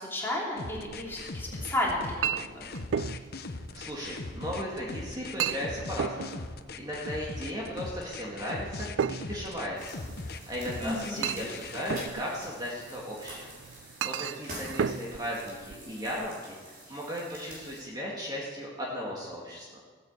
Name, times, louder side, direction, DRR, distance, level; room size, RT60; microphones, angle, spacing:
voice 1, 0.0-2.6 10.8-11.4, left 1 dB, 10° left, -4 dB, 3.3 m, -33 dB
sound 1, 0.6-12.1, left 3 dB, 55° left, 0.8 m, -40 dB
Chink clink, 0.8-16.3, right 8 dB, 90° right, 0.4 m, -37 dB
voice 2, 3.7-6.4 6.8-13.5 14.0-19.8, equal, 20° right, -4 dB, 2.2 m, -36 dB
sound 2, 9.7-17.8, right 1 dB, 50° right, 5.0 m, -47 dB
16.0 x 9.1 x 8.0 m, 1.5 s
head